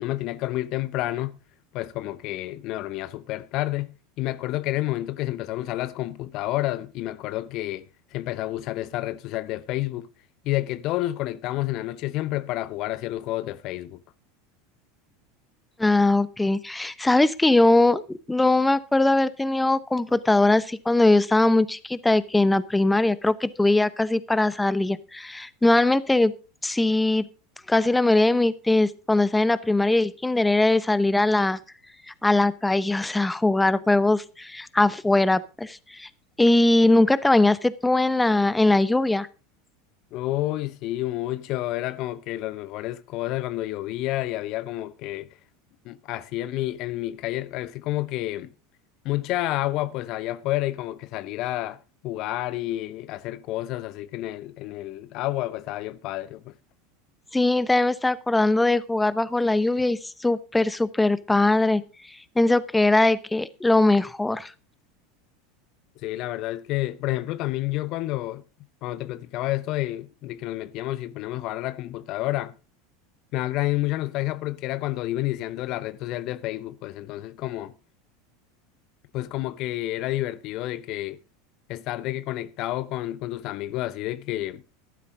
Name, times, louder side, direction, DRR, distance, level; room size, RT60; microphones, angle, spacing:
voice 1, 0.0-1.4 1.7-10.1 10.4-14.0 40.1-45.3 45.8-48.5 49.0-51.8 52.0-56.5 66.0-68.4 68.8-72.5 73.3-77.7 79.1-81.2 81.7-84.6, left 16 dB, 50° left, 0.7 m, -29 dB
voice 2, 15.8-26.3 26.6-27.3 27.7-31.6 32.1-36.1 36.4-39.3 57.3-61.8 62.4-64.5, left 2 dB, 10° left, 0.9 m, -21 dB
14.0 x 12.0 x 3.8 m
figure-of-eight pair, 80°, 0 cm